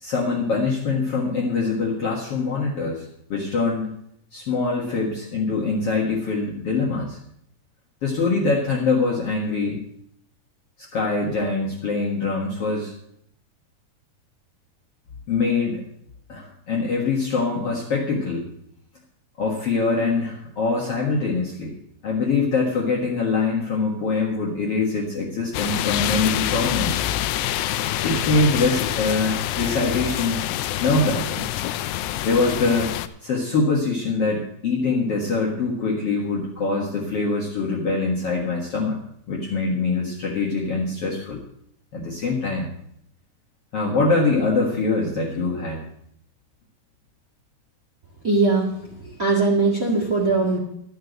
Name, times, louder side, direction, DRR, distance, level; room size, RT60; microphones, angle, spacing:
voice 1, 0.0-3.9 4.3-7.2 8.0-9.8 10.8-12.9 15.3-15.8 16.3-18.4 19.4-21.7 22.0-27.1 28.0-30.4 30.8-31.4 32.2-32.9 33.2-39.0 39.3-41.4 41.9-42.7 43.7-45.8, left 3 dB, 50° left, -3 dB, 2.0 m, -23 dB
sound 1, 25.5-33.1, left 13 dB, 80° left, 2.1 m, -26 dB
voice 2, 48.2-48.7 49.2-50.6, right 3 dB, 30° right, -2 dB, 1.7 m, -20 dB
13.0 x 5.8 x 7.9 m, 0.72 s
omnidirectional pair, 4.4 m